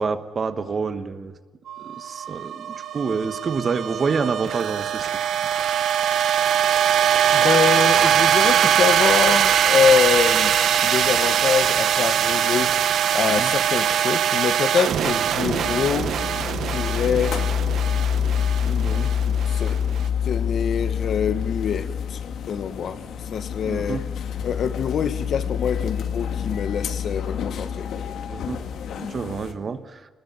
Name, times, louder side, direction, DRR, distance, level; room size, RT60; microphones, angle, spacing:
voice 1, 0.0-1.3 1.8-5.1 13.2-13.5 18.8-19.1 23.6-24.1 28.3-28.6 29.0-30.0, right 5 dB, 30° right, 10 dB, 1.2 m, -28 dB
sound 1, 1.7-20.0, right 9 dB, 60° right, 1.1 m, -22 dB
voice 2, 7.3-10.6 10.8-12.7 13.1-16.1 16.7-17.4 18.6-18.9 19.2-19.8 20.2-22.2 22.5-23.0 23.3-24.0 24.4-27.9, left 7 dB, 50° left, 10 dB, 1.5 m, -25 dB
sound 2, 15.3-29.5, left 8 dB, 70° left, 2.2 m, -27 dB
27.0 x 20.5 x 9.4 m, 1.3 s
wide cardioid pair, 180°, 0 cm